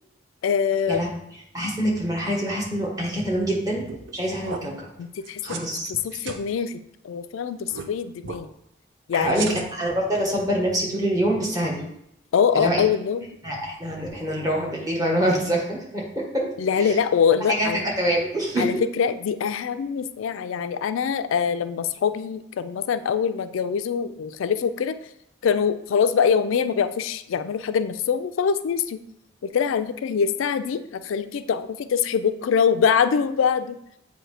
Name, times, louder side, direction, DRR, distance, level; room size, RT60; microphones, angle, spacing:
voice 1, 0.4-1.0 5.0-5.4 5.9-8.5 9.1-9.7 12.3-13.3 16.6-17.8 18.6-24.9 25.4-29.0 29.4-33.8, left 7 dB, 85° left, 11 dB, 0.3 m, -24 dB
voice 2, 1.5-3.8 4.1-4.9 5.4-5.9 9.1-9.5 9.7-11.8 12.5-12.8 13.4-16.5 16.7-17.0 17.5-18.7, right 1 dB, 20° right, -2 dB, 1.2 m, -25 dB
sound 1, 3.8-4.1 4.4-4.6 5.2-5.6 5.9-6.4 7.7-7.9 8.2-8.4 9.2-9.9, right 4 dB, 70° right, 0.6 m, -34 dB
7.6 x 2.7 x 4.9 m, 0.79 s
head